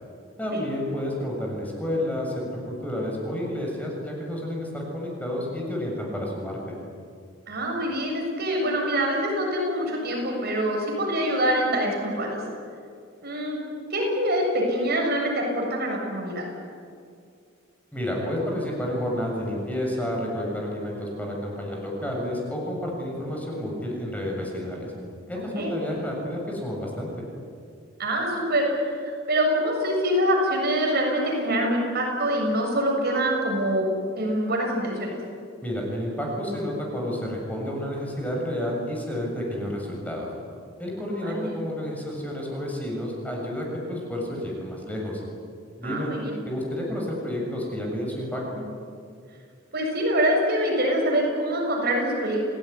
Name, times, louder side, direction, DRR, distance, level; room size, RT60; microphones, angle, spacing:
voice 1, 0.4-6.6 17.9-24.9 25.3-27.1 35.6-40.3 40.8-45.2 45.8-46.1 46.5-48.7, left 1 dB, 10° left, -2 dB, 7.2 m, -30 dB
voice 2, 7.5-12.3 13.2-13.6 13.9-16.5 25.5-25.7 28.0-33.9 34.1-35.2 41.1-41.5 45.8-46.4 49.7-52.4, equal, 55° right, 0 dB, 7.3 m, -25 dB
30.0 x 18.5 x 9.8 m, 2.3 s
head